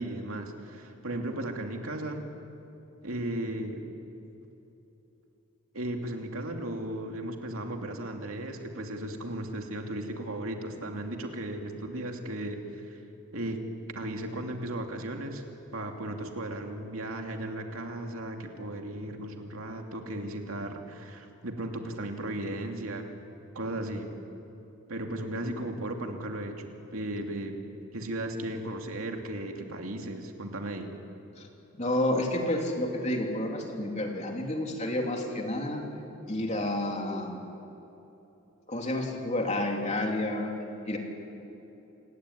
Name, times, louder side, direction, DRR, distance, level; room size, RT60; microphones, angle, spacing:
voice 1, 0.0-2.2 3.0-3.8 5.7-13.0 13.3-13.6 13.9-15.4 15.7-23.1 23.5-24.1 24.9-27.6 27.9-30.9, right 1 dB, 85° right, 3 dB, 2.6 m, -36 dB
voice 2, 31.8-35.8 36.3-37.5 38.7-40.5 40.8-41.0, left 1 dB, 35° left, 1 dB, 3.3 m, -30 dB
27.5 x 16.0 x 9.9 m, 3.0 s
head